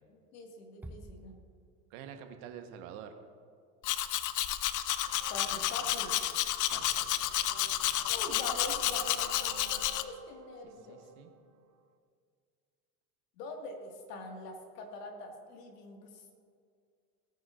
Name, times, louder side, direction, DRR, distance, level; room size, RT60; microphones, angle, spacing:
voice 1, 0.3-1.3 5.3-6.2 8.1-11.0 13.4-16.3, left 2 dB, 70° left, 2 dB, 2.1 m, -43 dB
Bass drum, 0.8-2.2, right 1 dB, 5° right, 0.3 m, -50 dB
voice 2, 1.9-3.1 6.6-7.4 10.6-11.3, right 8 dB, 60° right, 6 dB, 1.4 m, -48 dB
Domestic sounds home sounds, 3.8-10.0, left 13 dB, 40° left, 0.6 m, -31 dB
sound 1, 5.1-11.8, right 6 dB, 35° right, 0.9 m, -52 dB
18.0 x 9.3 x 2.6 m, 2.2 s
hypercardioid pair, 70°, 49 cm